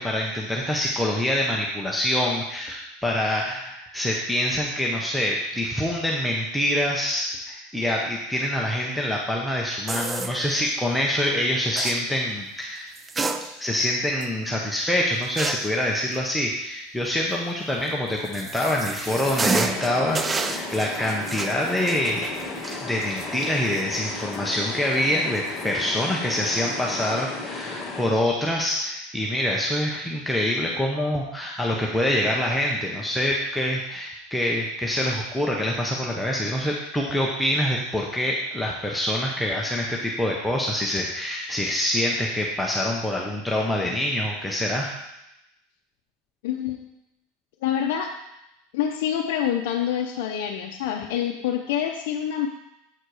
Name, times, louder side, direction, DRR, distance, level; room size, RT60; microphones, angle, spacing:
voice 1, 0.0-12.9 13.6-22.3 22.8-44.9, left 1 dB, ahead, -3 dB, 0.7 m, -25 dB
sound 1, 9.9-10.8 11.7-12.0 12.9-13.8 14.2-14.3 15.4-15.8 17.9-24.0 24.3-24.4 25.3-25.6, right 4 dB, 15° right, 0.4 m, -30 dB
sound 2, 19.0-28.0, left 3 dB, 15° left, 1.4 m, -35 dB
voice 2, 46.4-46.8 47.6-48.1 48.7-52.5, left 9 dB, 70° left, 1 dB, 0.6 m, -26 dB
7.8 x 4.3 x 4.8 m, 0.88 s
supercardioid pair, 135°, 0 cm